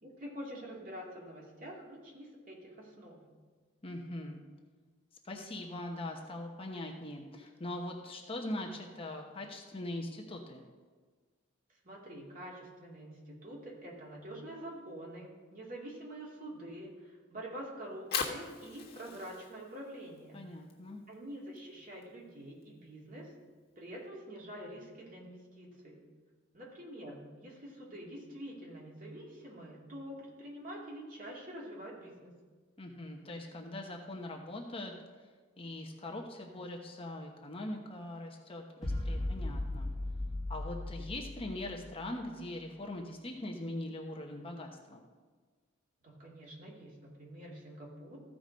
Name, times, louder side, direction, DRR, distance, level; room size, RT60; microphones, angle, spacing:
voice 1, 0.0-3.2 11.8-20.4 21.1-23.3 23.8-26.0 26.5-32.3 46.0-48.2, right 1 dB, 45° right, -4 dB, 2.5 m, -46 dB
voice 2, 3.8-4.4 5.2-10.6 20.3-21.0 32.8-34.9 35.6-39.9 40.5-45.0, left 1 dB, 30° left, 0 dB, 1.0 m, -41 dB
Fire, 17.8-24.0, left 6 dB, 50° left, 1.5 m, -43 dB
sound 1, 38.8-42.3, left 1 dB, ahead, 1.5 m, -37 dB
14.5 x 5.0 x 5.1 m, 1.5 s
head